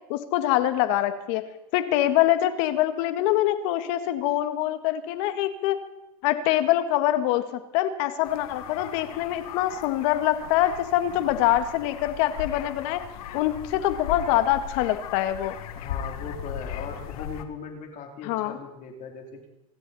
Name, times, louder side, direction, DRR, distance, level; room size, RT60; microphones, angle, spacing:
voice 1, 0.1-1.4 1.7-5.8 6.2-13.0 13.3-15.6 18.2-18.6, left 13 dB, 65° left, 9 dB, 1.8 m, -24 dB
sound 1, 8.2-17.4, left 9 dB, 80° left, 1.7 m, -38 dB
voice 2, 15.7-19.5, left 5 dB, 45° left, 2 dB, 3.4 m, -39 dB
25.5 x 13.0 x 4.2 m, 0.95 s
supercardioid pair, 115°, 18 cm